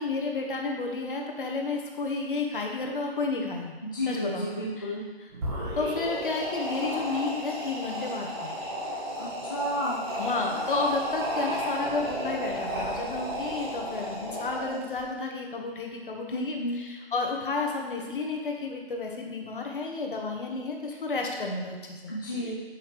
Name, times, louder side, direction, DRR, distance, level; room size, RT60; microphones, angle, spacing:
voice 1, 0.0-3.8 4.1-4.5 4.8-4.9 5.7-8.6 10.2-22.1, left 3 dB, 50° left, 1 dB, 1.3 m, -31 dB
voice 2, 3.8-5.0 9.2-10.0 16.3-16.8 22.1-22.5, left 1 dB, 20° left, -7 dB, 0.5 m, -32 dB
sound 1, 5.3-15.0, equal, 25° right, 1.4 m, -33 dB
9.4 x 5.7 x 3.2 m, 1.3 s
hypercardioid pair, 170°, 33 cm